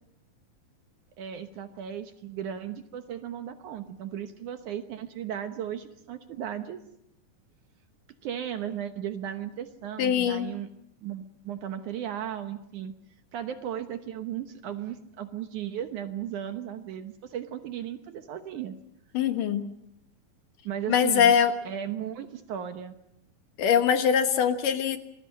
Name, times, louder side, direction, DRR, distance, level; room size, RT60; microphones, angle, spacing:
voice 1, 1.2-6.8 8.2-10.7 11.0-12.9 13.3-18.8 20.6-21.3 21.7-22.9, right 9 dB, 65° right, 8 dB, 2.2 m, -36 dB
voice 2, 10.0-10.5 19.1-19.7 20.9-21.5 23.6-25.0, left 8 dB, 65° left, 8 dB, 2.8 m, -22 dB
27.0 x 20.5 x 7.5 m, 0.79 s
omnidirectional pair, 4.3 m